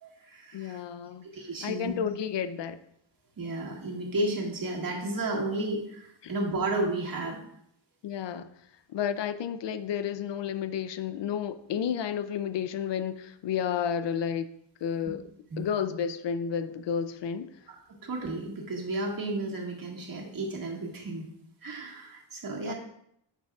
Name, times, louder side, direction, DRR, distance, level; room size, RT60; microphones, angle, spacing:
voice 1, 0.0-0.8 1.3-1.9 3.4-7.4 15.5-15.7 17.7-21.3 21.6-22.7, right 2 dB, 50° right, -1 dB, 1.9 m, -33 dB
voice 2, 0.5-1.3 1.6-2.8 6.2-6.3 8.0-8.5 8.9-14.5 14.8-15.2 15.6-17.5 22.6-22.7, left 8 dB, 70° left, 12 dB, 0.6 m, -31 dB
11.0 x 6.7 x 2.4 m, 0.73 s
wide cardioid pair, 115°, 45 cm